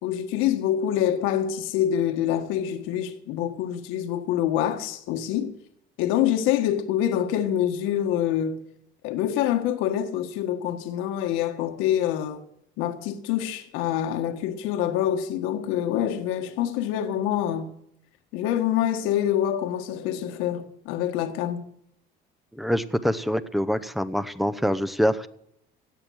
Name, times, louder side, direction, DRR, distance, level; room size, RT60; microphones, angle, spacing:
voice 1, 0.0-5.5 6.0-8.6 9.0-12.4 12.8-17.7 18.3-21.7, left 10 dB, 85° left, 1.5 m, -26 dB
voice 2, 22.5-25.3, equal, ahead, 0.7 m, -25 dB
17.0 x 9.0 x 6.4 m
cardioid pair, 120°, 21 cm